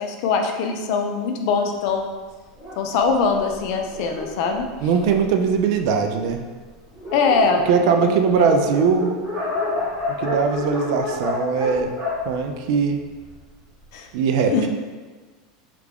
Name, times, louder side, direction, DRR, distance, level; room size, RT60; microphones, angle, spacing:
voice 1, 0.0-2.1 2.8-4.7 7.1-7.7 8.0-8.5 13.9-14.1 14.5-14.7, left 4 dB, 55° left, 4 dB, 0.4 m, -22 dB
Dog, 2.6-5.5 6.2-6.3 6.6-6.7 6.9-13.3, left 2 dB, 15° right, 1.4 m, -30 dB
voice 2, 4.8-6.4 7.7-9.2 10.2-11.9 12.3-13.0 14.1-14.5, right 5 dB, 55° right, 5 dB, 0.3 m, -20 dB
3.3 x 2.4 x 3.4 m, 1.4 s
supercardioid pair, 165°, 3 cm